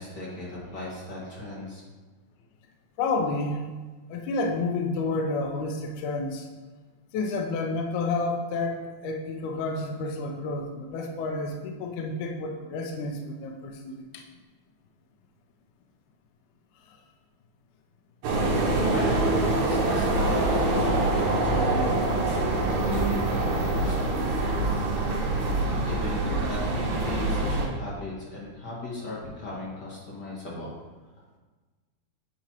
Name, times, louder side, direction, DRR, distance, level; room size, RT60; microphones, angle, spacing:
voice 1, 0.0-1.8 18.9-19.1 19.6-20.4 20.7-24.7 25.8-30.7, left 2 dB, 50° left, -6 dB, 1.2 m, -37 dB
voice 2, 3.0-3.6 4.1-6.5 7.1-14.0, left 3 dB, 75° left, 2 dB, 2.0 m, -30 dB
sound 1, 18.2-27.7, right 2 dB, 70° right, 2.4 m, -25 dB
8.8 x 4.2 x 2.9 m, 1.3 s
omnidirectional pair, 3.9 m